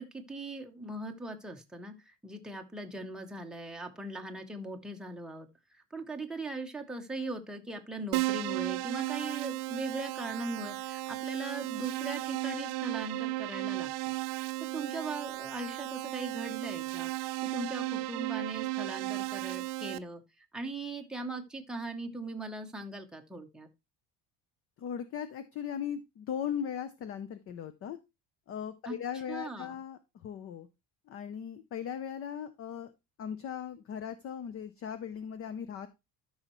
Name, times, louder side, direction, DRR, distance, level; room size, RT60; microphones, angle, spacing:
voice 1, 0.0-5.5 5.9-14.1 14.7-20.2 20.5-23.7 28.8-29.0 29.3-29.7, right 2 dB, ahead, 2 dB, 0.8 m, -39 dB
Keyboard (musical), 8.1-20.0, right 19 dB, 90° right, 0.6 m, -35 dB
voice 2, 24.8-28.0 28.5-30.7 31.1-32.9 33.2-35.9, left 8 dB, 35° left, 13 dB, 0.6 m, -38 dB
13.0 x 5.5 x 3.0 m, 0.24 s
cardioid pair, 160°, 39 cm